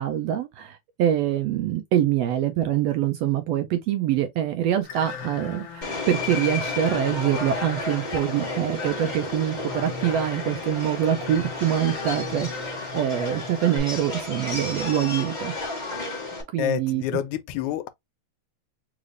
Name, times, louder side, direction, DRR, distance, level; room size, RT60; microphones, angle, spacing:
voice 1, 0.0-15.5 16.5-17.0, right 11 dB, 80° right, 1.5 m, -25 dB
sound 1, 4.8-13.8, left 6 dB, 65° left, 1.5 m, -39 dB
Subway metro underground, 5.8-16.4, left 2 dB, 20° left, 1.2 m, -32 dB
voice 2, 16.6-17.9, left 11 dB, 85° left, 2.0 m, -28 dB
4.9 x 3.2 x 2.5 m
omnidirectional pair, 3.4 m